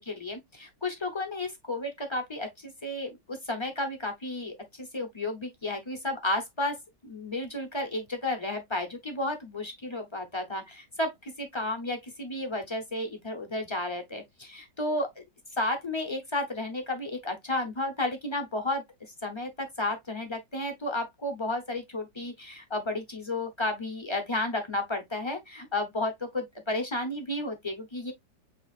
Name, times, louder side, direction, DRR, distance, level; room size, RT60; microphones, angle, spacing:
voice 1, 0.0-6.8 7.0-15.2 15.6-18.8 19.2-28.1, left 2 dB, 30° left, 0.5 m, -32 dB
7.0 x 2.8 x 2.4 m
omnidirectional pair, 2.0 m